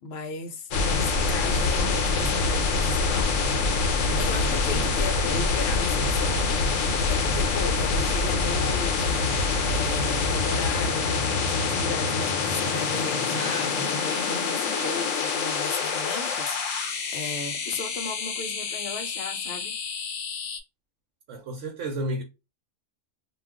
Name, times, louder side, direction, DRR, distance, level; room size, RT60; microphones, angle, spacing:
voice 1, 0.0-3.3 4.2-19.7, left 4 dB, 65° left, 0.7 m, -36 dB
sound 1, 0.7-20.6, left 4 dB, 90° left, 1.0 m, -26 dB
sound 2, 12.4-17.4, right 3 dB, 45° right, 0.8 m, -45 dB
voice 2, 21.3-22.2, right 1 dB, 75° right, 1.0 m, -31 dB
2.4 x 2.3 x 3.4 m
omnidirectional pair, 1.3 m